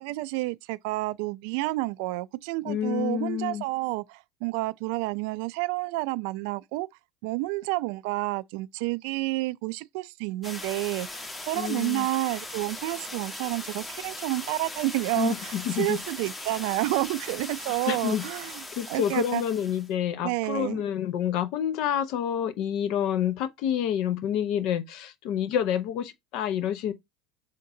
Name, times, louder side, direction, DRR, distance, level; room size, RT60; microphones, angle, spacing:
voice 1, 0.0-6.9 7.2-19.4 20.2-20.8, right 21 dB, 65° right, 0.3 m, -30 dB
voice 2, 2.6-3.6 11.6-12.1 15.2-16.0 17.9-18.2 18.7-26.9, left 9 dB, 60° left, 0.7 m, -28 dB
sound 1, 10.4-19.9, left 2 dB, 15° left, 1.2 m, -39 dB
5.0 x 3.8 x 2.7 m
hypercardioid pair, 85°, 0 cm